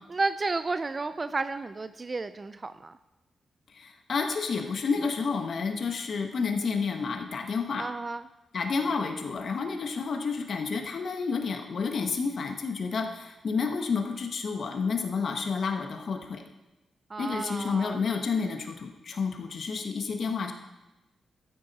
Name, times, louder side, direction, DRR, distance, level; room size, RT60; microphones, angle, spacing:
voice 1, 0.1-3.0 7.8-8.3 17.1-18.0, right 3 dB, 40° right, 12 dB, 0.4 m, -32 dB
voice 2, 3.7-7.8 8.5-16.4 17.2-20.5, left 5 dB, 65° left, 4 dB, 1.2 m, -30 dB
13.0 x 9.5 x 4.2 m, 1.0 s
supercardioid pair, 50°, 0 cm